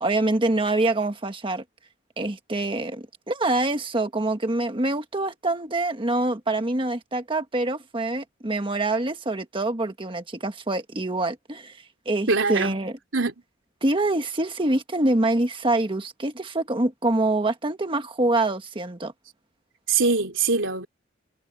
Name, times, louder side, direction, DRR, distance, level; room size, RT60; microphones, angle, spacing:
voice 1, 0.0-1.6 2.2-11.8 12.0-13.0 13.8-19.1, right 2 dB, 25° right, 1.4 m, -25 dB
voice 2, 12.3-12.8 13.1-13.3 19.9-20.9, right 4 dB, 75° right, 3.5 m, -22 dB
head